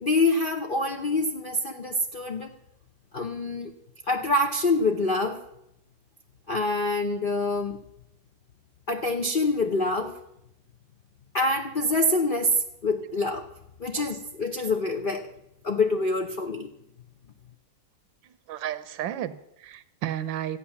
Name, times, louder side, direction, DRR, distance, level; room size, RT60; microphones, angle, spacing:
voice 1, 0.0-2.5 3.1-3.7 4.1-5.4 6.5-7.8 8.9-10.1 11.3-13.5 13.8-15.3 15.6-16.7, left 2 dB, 45° left, 4 dB, 0.6 m, -26 dB
voice 2, 18.5-20.6, right 11 dB, 80° right, 13 dB, 1.5 m, -33 dB
14.0 x 8.8 x 7.1 m, 0.81 s
omnidirectional pair, 2.0 m